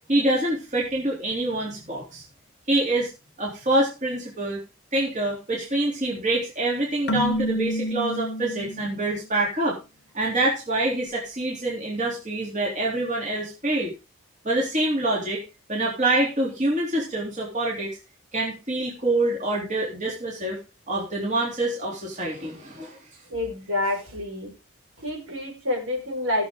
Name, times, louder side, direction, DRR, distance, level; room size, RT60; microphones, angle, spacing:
voice 1, 0.1-2.2 2.7-3.1 3.4-4.6 4.9-9.8 10.1-13.9 14.4-15.4 15.7-18.0 18.3-20.6 20.9-23.0, right 2 dB, 35° right, -3 dB, 3.5 m, -26 dB
Keyboard (musical), 7.1-9.1, equal, 50° left, 0.9 m, -28 dB
voice 2, 23.3-24.5 25.0-26.5, left 1 dB, 75° right, 1 dB, 5.1 m, -28 dB
18.0 x 7.0 x 3.9 m, 0.29 s
head